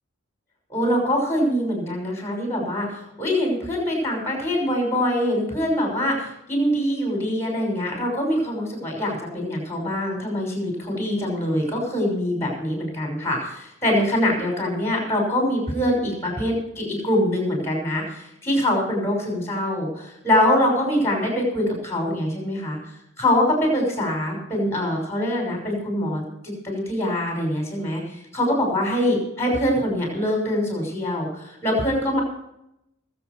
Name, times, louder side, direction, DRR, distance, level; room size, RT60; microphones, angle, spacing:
voice 1, 0.7-22.8 23.2-32.2, left 1 dB, 10° left, 0 dB, 5.8 m, -24 dB
22.0 x 8.2 x 4.6 m, 0.83 s
head